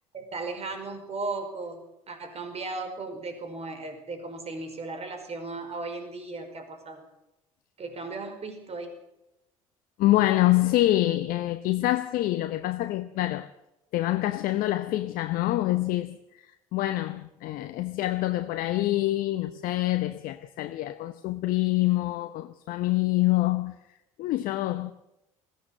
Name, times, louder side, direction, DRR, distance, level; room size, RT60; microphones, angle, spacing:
voice 1, 0.1-1.8 2.1-7.0 7.8-8.9, right 3 dB, 35° right, 5.1 m, -36 dB
voice 2, 10.0-13.5 13.9-23.8 24.2-24.9, left 16 dB, 55° left, 0.9 m, -26 dB
20.5 x 16.5 x 7.7 m
figure-of-eight pair, 55°, 17 cm